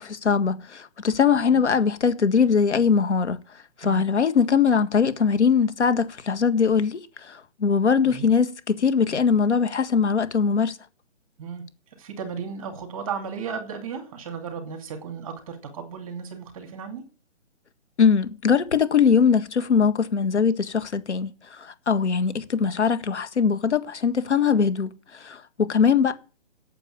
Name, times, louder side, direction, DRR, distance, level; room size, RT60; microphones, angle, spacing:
voice 1, 0.0-3.4 3.8-10.8 18.0-26.1, left 6 dB, 70° left, 1.7 m, -21 dB
voice 2, 8.0-8.4 11.4-17.0, right 6 dB, 30° right, 2.5 m, -35 dB
9.1 x 7.1 x 8.8 m
hypercardioid pair, 165°, 36 cm